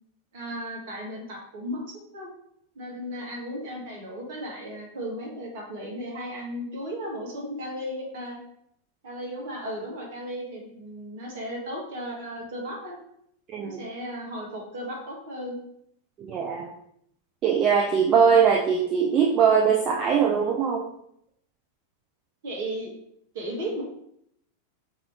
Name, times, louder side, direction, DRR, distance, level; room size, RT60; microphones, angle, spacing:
voice 1, 0.3-2.3 2.8-8.4 9.0-13.0 13.6-15.6 22.4-22.9 23.3-23.8, equal, 55° right, -2 dB, 1.6 m, -35 dB
voice 2, 16.2-16.7 17.4-20.9, right 6 dB, 30° right, -1 dB, 0.5 m, -21 dB
5.2 x 3.0 x 2.8 m, 0.72 s
figure-of-eight pair, 90°, 0 cm